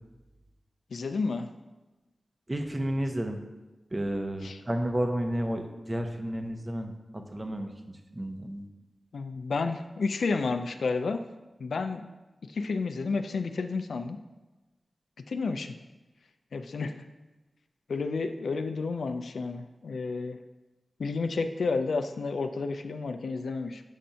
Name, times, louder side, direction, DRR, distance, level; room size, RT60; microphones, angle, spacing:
voice 1, 0.9-1.5 4.4-4.6 9.1-11.2 11.6-12.1 12.5-14.2 15.3-15.7 16.5-17.0 17.9-20.4 21.0-23.8, left 4 dB, 90° left, 8 dB, 0.3 m, -31 dB
voice 2, 2.5-3.4 3.9-8.7, right 1 dB, 30° right, 4 dB, 0.8 m, -32 dB
7.2 x 2.6 x 5.5 m, 1.1 s
cardioid pair, 45°, 0 cm